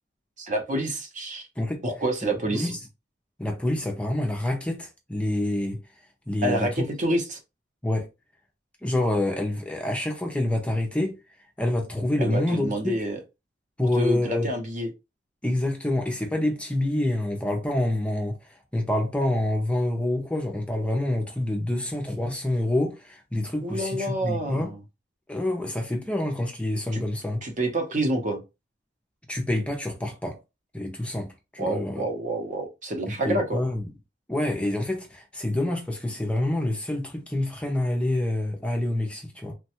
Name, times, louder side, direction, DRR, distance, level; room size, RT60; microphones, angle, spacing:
voice 1, 0.4-1.4 1.8-2.7 6.4-7.4 12.2-13.2 14.0-14.9 23.6-24.8 26.9-27.0 27.4-28.4 31.6-33.6, right 1 dB, 40° right, 0.7 m, -28 dB
voice 2, 2.2-2.8 3.4-5.8 6.3-6.9 7.8-8.1 8.8-11.2 11.6-12.7 13.8-14.5 15.4-24.7 25.3-27.4 29.3-30.4 30.7-32.1 33.1-33.9 34.3-39.5, left 1 dB, 5° left, 0.5 m, -27 dB
3.1 x 2.2 x 2.8 m
head